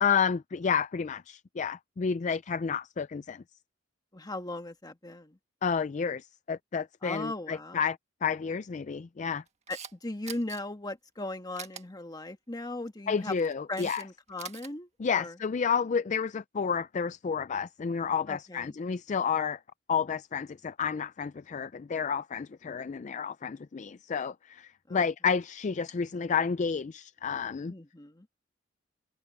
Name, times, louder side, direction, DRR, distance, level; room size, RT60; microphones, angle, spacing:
voice 1, 0.0-3.4 5.6-9.4 13.1-14.0 15.0-19.6 19.9-27.7, left 6 dB, 40° left, 0.4 m, -30 dB
voice 2, 4.1-5.4 7.0-7.8 9.7-13.3 13.7-15.3 18.3-18.7 24.9-25.0 27.7-28.3, left 2 dB, 20° left, 1.5 m, -38 dB
Camera, 9.5-9.9 10.3-10.6 11.6-11.8 13.1-14.0 14.3-14.7, right 7 dB, 35° right, 1.7 m, -43 dB
open air
head